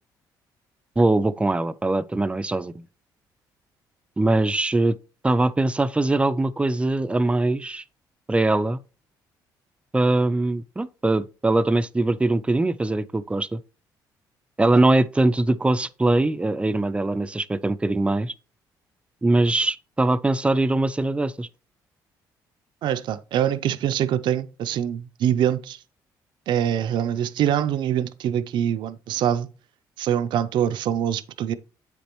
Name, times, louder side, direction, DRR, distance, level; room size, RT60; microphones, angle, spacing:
voice 1, 1.0-2.9 4.2-5.0 5.2-7.8 8.3-8.8 9.9-13.6 14.6-18.3 19.2-21.5, right 2 dB, 15° right, 0.4 m, -22 dB
voice 2, 22.8-25.8 26.5-29.5 30.0-31.5, right 10 dB, 70° right, 0.5 m, -24 dB
7.8 x 5.2 x 3.0 m
cardioid pair, 85°, 8 cm